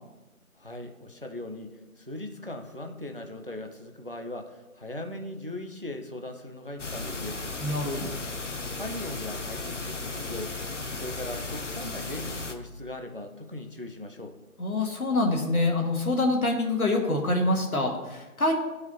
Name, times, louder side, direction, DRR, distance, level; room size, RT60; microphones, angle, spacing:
voice 1, 0.6-7.6 8.7-10.5 10.9-14.4, left 1 dB, 40° right, 5 dB, 0.5 m, -39 dB
sound 1, 6.8-12.5, left 3 dB, 55° left, 0.7 m, -35 dB
voice 2, 7.6-8.1 14.6-18.5, left 2 dB, 75° left, 1 dB, 1.7 m, -26 dB
12.5 x 4.7 x 2.9 m, 1.1 s
figure-of-eight pair, 170°, 43 cm